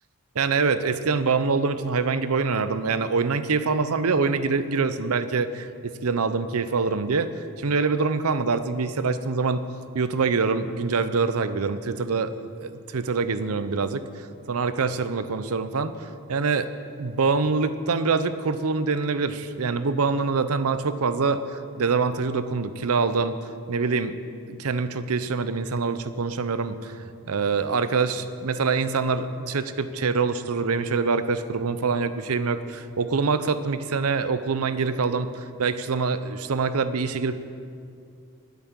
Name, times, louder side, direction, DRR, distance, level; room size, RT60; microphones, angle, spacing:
voice 1, 0.3-7.3 7.6-9.7 9.9-12.3 12.6-16.7 17.0-23.4 23.7-24.1 24.5-37.3, right 4 dB, 75° right, 12 dB, 0.7 m, -25 dB
9.7 x 8.3 x 9.6 m, 2.4 s
head